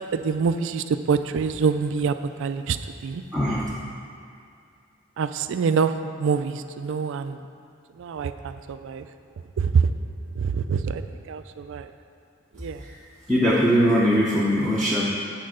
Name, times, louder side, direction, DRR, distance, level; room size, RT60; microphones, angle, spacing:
voice 1, 0.1-3.2 5.2-7.5 8.0-9.1 9.6-9.9 10.4-11.9 12.5-12.8, right 5 dB, 65° right, 10 dB, 0.3 m, -25 dB
voice 2, 3.3-3.7 12.8-13.0 13.3-15.1, equal, 5° left, -6 dB, 0.7 m, -21 dB
8.5 x 4.5 x 6.3 m, 2.4 s
head